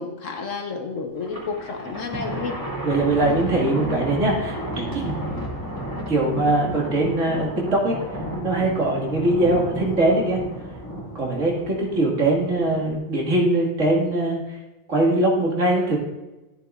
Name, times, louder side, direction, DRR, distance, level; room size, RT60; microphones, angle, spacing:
voice 1, 0.0-2.6, left 4 dB, 65° left, 4 dB, 1.4 m, -31 dB
Thunder, 1.2-12.9, equal, 15° left, 2.3 m, -33 dB
voice 2, 2.8-5.1 6.1-8.0 8.4-10.4 11.1-14.4 14.9-16.0, right 2 dB, 60° right, -2 dB, 2.4 m, -21 dB
14.0 x 8.1 x 2.5 m, 1.1 s
omnidirectional pair, 1.5 m